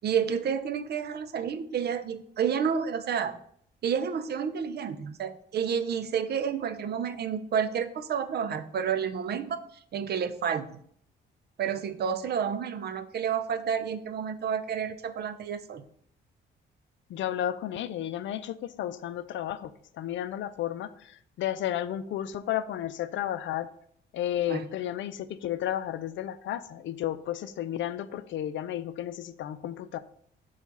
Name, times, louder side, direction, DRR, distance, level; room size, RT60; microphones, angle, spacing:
voice 1, 0.0-3.4 3.8-9.6 9.9-10.8 11.6-15.8 24.5-24.7, right 7 dB, 55° right, 11 dB, 0.5 m, -30 dB
voice 2, 17.1-23.7 24.1-30.0, left 11 dB, 70° left, 13 dB, 0.5 m, -33 dB
7.2 x 2.4 x 5.4 m, 0.65 s
cardioid pair, 90°, 20 cm